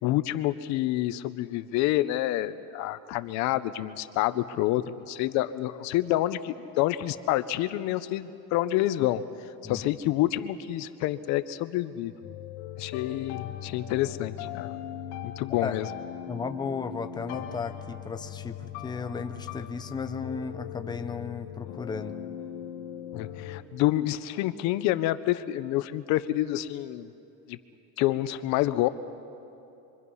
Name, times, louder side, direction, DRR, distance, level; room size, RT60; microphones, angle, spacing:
voice 1, 0.0-9.2 9.6-12.1 12.8-14.8 15.2-15.9 23.1-27.1 27.5-27.6 28.0-28.9, left 15 dB, 70° left, 13 dB, 0.8 m, -28 dB
sound 1, 12.2-23.6, left 10 dB, 90° left, 1.7 m, -39 dB
voice 2, 16.3-22.2, left 5 dB, 15° left, 7 dB, 0.8 m, -35 dB
26.0 x 24.5 x 5.6 m, 2.8 s
cardioid pair, 145°, 29 cm